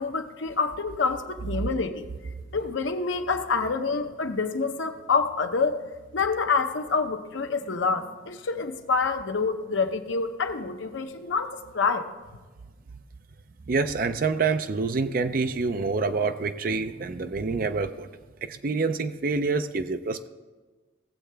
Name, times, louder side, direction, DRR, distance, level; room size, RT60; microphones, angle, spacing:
voice 1, 0.0-2.0 2.5-12.1, left 4 dB, 80° left, 6 dB, 0.8 m, -27 dB
voice 2, 13.7-18.1 18.5-20.3, right 4 dB, 50° right, 9 dB, 0.5 m, -27 dB
17.0 x 7.4 x 3.4 m, 1.3 s
head